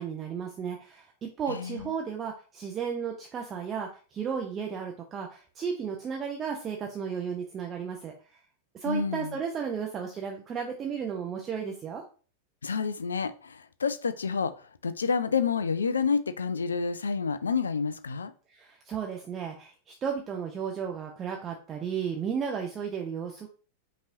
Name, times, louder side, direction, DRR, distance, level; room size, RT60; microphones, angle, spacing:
voice 1, 0.0-8.4 8.8-12.0 18.5-23.5, right 7 dB, 25° right, 0.7 m, -34 dB
voice 2, 1.5-1.9 8.9-9.4 12.6-18.3, left 5 dB, 70° left, 0.4 m, -29 dB
5.3 x 3.0 x 2.6 m
figure-of-eight pair, 90°, 0 cm